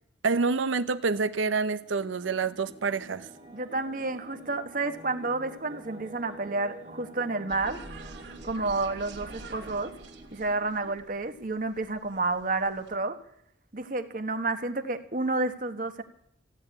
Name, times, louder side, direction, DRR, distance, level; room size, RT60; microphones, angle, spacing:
voice 1, 0.2-3.3, right 4 dB, 80° right, 13 dB, 0.7 m, -27 dB
sound 1, 1.8-11.0, right 1 dB, 25° right, 1.9 m, -48 dB
voice 2, 3.5-7.8 8.4-9.9 10.3-13.2 13.7-16.0, right 3 dB, 45° right, 8 dB, 1.3 m, -30 dB
sound 2, 7.5-13.0, right 2 dB, 60° right, 2.2 m, -47 dB
15.5 x 8.8 x 9.6 m, 0.74 s
head